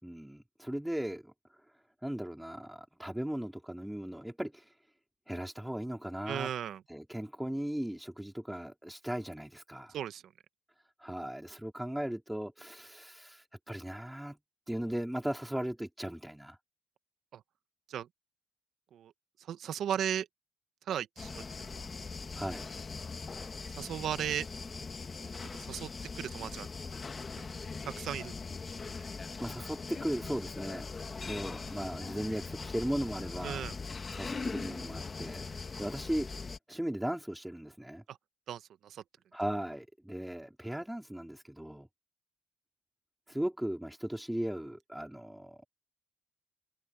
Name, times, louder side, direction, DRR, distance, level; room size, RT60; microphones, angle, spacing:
voice 1, 0.0-1.3 2.0-4.7 5.3-6.5 6.9-10.0 11.0-14.4 14.7-16.6 22.3-22.7 29.4-30.9 31.3-33.6 34.1-35.5 35.8-36.3 36.7-38.0 39.3-41.9 43.3-45.7, right 1 dB, 5° right, 4.5 m, -37 dB
voice 2, 6.3-6.8 9.9-10.3 17.3-17.4 17.9-18.1 18.9-19.1 19.5-20.3 20.9-21.9 23.7-24.5 25.6-26.7 27.8-28.3 33.4-33.7 38.1-38.2 38.5-39.0, right 10 dB, 65° right, 1.2 m, -36 dB
sound 1, 21.2-36.6, left 4 dB, 30° left, 1.7 m, -41 dB
supercardioid pair, 75°, 0 cm